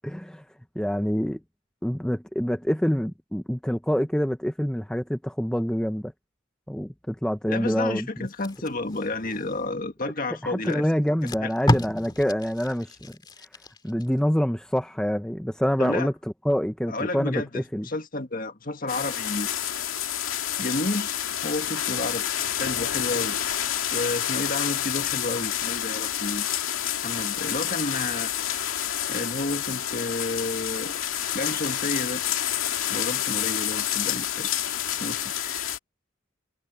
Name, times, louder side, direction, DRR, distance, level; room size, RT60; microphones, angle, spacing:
voice 1, 0.0-0.4 0.8-1.4 1.8-6.1 6.7-8.3 10.4-12.9 13.8-16.1 16.4-17.9, equal, 5° left, 0.7 m, -26 dB
voice 2, 7.5-10.8 11.4-11.5 15.8-16.1 16.9-19.5 20.6-21.2 21.4-23.5 23.9-26.5 27.0-28.3 29.1-31.0 31.3-32.2 32.9-35.7, left 2 dB, 40° left, 1.8 m, -31 dB
Packing tape duct tape, 8.3-9.9 10.6-10.7 11.1-14.1 14.5-14.7, left 1 dB, 20° left, 2.1 m, -30 dB
sound 1, 18.9-35.8, left 11 dB, 80° left, 2.1 m, -28 dB
head